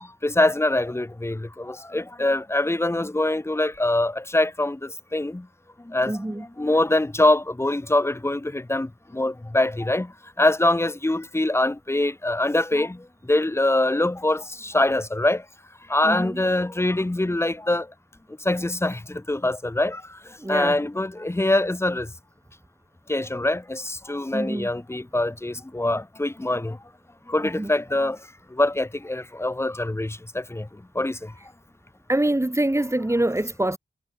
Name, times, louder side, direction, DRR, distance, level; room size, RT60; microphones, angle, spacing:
voice 1, 0.2-5.5 5.9-6.2 6.6-10.1 10.4-15.4 15.9-17.9 18.4-20.0 20.5-22.1 23.1-26.8 27.3-28.2 28.5-30.7 30.9-31.3, left 1 dB, 15° left, 0.8 m, -24 dB
voice 2, 6.1-6.4 16.0-16.4 20.4-20.8 24.3-24.7 27.4-27.7 32.1-33.8, right 1 dB, 15° right, 2.3 m, -25 dB
cardioid pair, 50°, 18 cm